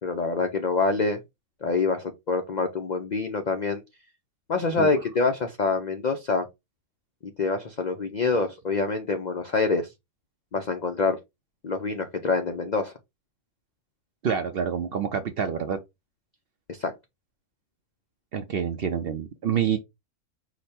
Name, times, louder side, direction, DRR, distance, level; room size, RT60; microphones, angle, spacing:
voice 1, 0.0-1.2 1.6-3.8 4.5-6.5 7.4-9.9 10.5-11.2 11.6-12.9 16.7-16.9, left 4 dB, 75° left, 0.4 m, -26 dB
voice 2, 14.2-15.8 18.3-19.8, right 7 dB, 65° right, 0.6 m, -27 dB
5.0 x 2.2 x 4.1 m
omnidirectional pair, 1.5 m